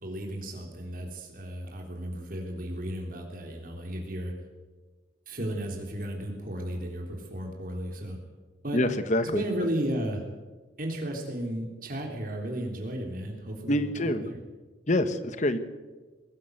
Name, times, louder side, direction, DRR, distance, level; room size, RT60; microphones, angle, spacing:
voice 1, 0.0-4.3 5.3-8.2 8.6-8.8 9.3-10.2 10.8-14.4, right 1 dB, 50° right, 2 dB, 3.5 m, -34 dB
voice 2, 8.7-9.4 13.7-14.2 14.9-15.6, left 1 dB, 40° left, 11 dB, 1.4 m, -26 dB
22.0 x 15.0 x 7.9 m, 1.3 s
head